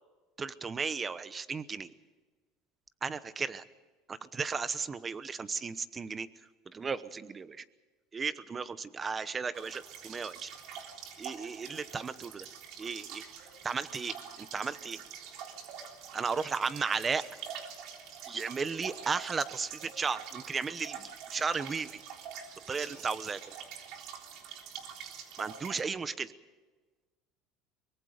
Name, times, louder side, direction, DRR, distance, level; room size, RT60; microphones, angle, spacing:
voice 1, 0.4-1.9 3.0-3.6 4.1-6.3 6.7-7.6 8.1-10.5 11.2-12.5 12.8-13.2 13.6-15.0 16.1-17.2 18.3-22.0 22.7-23.4 25.4-26.3, right 5 dB, 20° right, 15 dB, 1.0 m, -35 dB
sound 1, 9.5-25.8, right 7 dB, 60° right, 3.5 m, -46 dB
23.5 x 22.5 x 5.2 m, 1.3 s
supercardioid pair, 130°, 0 cm